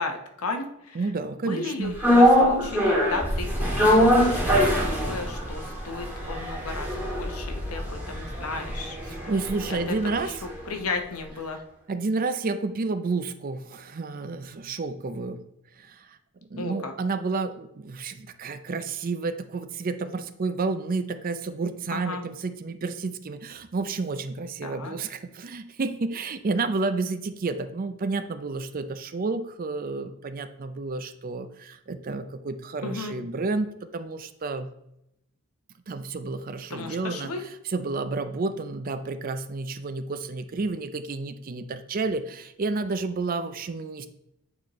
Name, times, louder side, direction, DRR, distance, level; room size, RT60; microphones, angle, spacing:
voice 1, 0.0-1.0 1.4-3.5 3.8-8.9 9.7-9.8 10.0-10.3 10.7-11.6 16.6-16.9 21.9-22.2 24.6-24.9 32.8-33.2 36.7-37.4, left 3 dB, 75° left, 5 dB, 0.9 m, -34 dB
voice 2, 0.9-2.0 9.1-10.3 11.9-15.4 15.8-33.7 33.9-34.7 35.9-44.1, right 3 dB, 40° right, 10 dB, 0.4 m, -30 dB
sound 1, 2.0-10.3 10.6-10.7, equal, 10° right, 1.7 m, -23 dB
8.6 x 4.3 x 3.0 m, 0.80 s
head